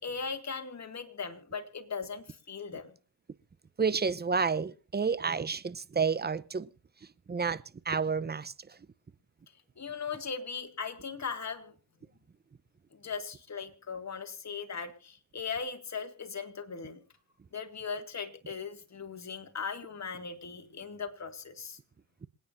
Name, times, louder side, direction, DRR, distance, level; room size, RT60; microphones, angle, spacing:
voice 1, 0.0-2.9 9.8-11.7 12.9-17.0 17.5-21.8, left 5 dB, 40° left, 2.4 m, -38 dB
voice 2, 3.8-6.7 7.3-8.5, right 5 dB, 25° right, 0.8 m, -30 dB
27.0 x 9.5 x 2.6 m
supercardioid pair, 60°, 40 cm